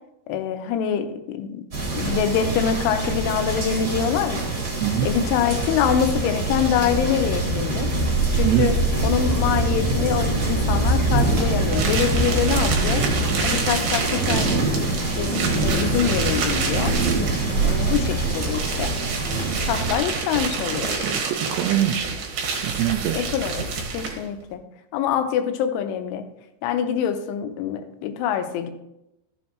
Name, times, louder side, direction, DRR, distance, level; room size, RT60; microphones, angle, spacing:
voice 1, 0.3-1.6 1.9-4.5 5.0-7.9 8.3-8.7 9.0-13.0 13.4-14.5 14.7-14.9 15.2-16.9 17.6-18.9 19.6-20.9 23.1-23.7 23.9-24.6 24.9-26.2 26.6-28.7, left 8 dB, 85° left, 7 dB, 3.3 m, -25 dB
sound 1, 1.7-20.0, right 3 dB, 30° right, 1.9 m, -25 dB
voice 2, 4.8-5.1 8.4-8.7 21.0-22.2 22.6-23.3, right 12 dB, 85° right, 5 dB, 2.5 m, -23 dB
sound 2, 4.9-14.7, equal, 15° left, 0.9 m, -26 dB
sound 3, 11.7-24.3, right 5 dB, 60° right, 2.3 m, -29 dB
14.0 x 7.2 x 3.1 m, 0.86 s
omnidirectional pair, 5.5 m